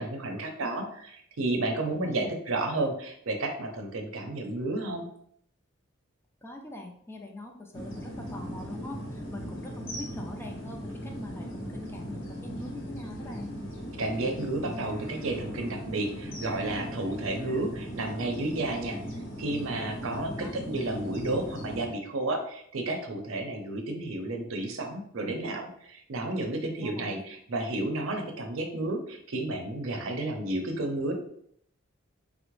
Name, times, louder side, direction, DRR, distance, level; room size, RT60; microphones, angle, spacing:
voice 1, 0.0-5.1 14.0-19.0 19.4-31.1, right 2 dB, 90° right, 3 dB, 0.6 m, -32 dB
voice 2, 6.4-13.5 20.3-20.5 26.8-27.2, left 2 dB, 10° left, 2 dB, 0.4 m, -43 dB
sound 1, 7.7-21.9, equal, 70° left, 0.8 m, -38 dB
3.6 x 2.0 x 3.0 m, 0.67 s
head